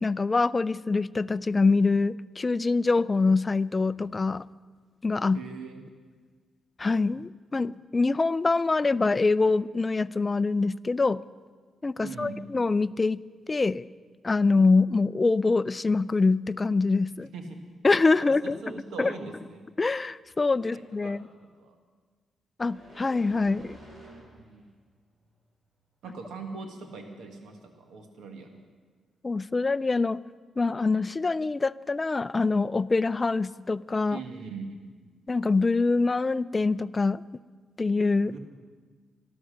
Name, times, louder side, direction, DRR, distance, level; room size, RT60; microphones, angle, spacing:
voice 1, 0.0-4.4 5.0-5.4 6.8-11.2 11.8-13.2 13.5-13.9 14.2-17.3 17.8-18.6 19.0-19.1 19.8-21.2 22.6-23.8 29.2-30.2 30.6-34.2 35.3-37.2 37.8-38.3, left 3 dB, 25° left, 18 dB, 0.3 m, -24 dB
voice 2, 5.3-5.8 12.0-12.4 17.3-17.7 18.2-19.7 20.7-21.2 21.6-21.7 24.2-24.6 26.0-28.6 34.1-34.8 38.3-38.4, right 4 dB, 85° right, 4 dB, 1.5 m, -41 dB
sound 1, 22.7-24.7 25.1-25.3, right 1 dB, 50° right, 3.6 m, -49 dB
13.0 x 12.5 x 6.5 m, 1.5 s
cardioid pair, 105°, 0 cm